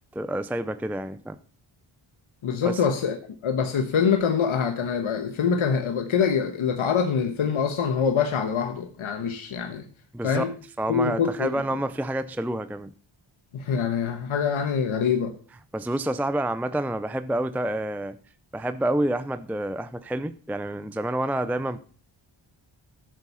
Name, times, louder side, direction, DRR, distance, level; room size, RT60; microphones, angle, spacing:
voice 1, 0.0-1.4 2.6-2.8 10.1-10.5 10.8-12.9 15.7-18.2 18.5-21.8, right 1 dB, 5° right, 12 dB, 0.5 m, -28 dB
voice 2, 2.4-3.2 3.4-9.9 10.2-10.5 10.9-11.5 13.5-15.3, left 6 dB, 80° left, 6 dB, 1.3 m, -24 dB
13.0 x 7.8 x 5.6 m, 0.42 s
wide cardioid pair, 100°, 48 cm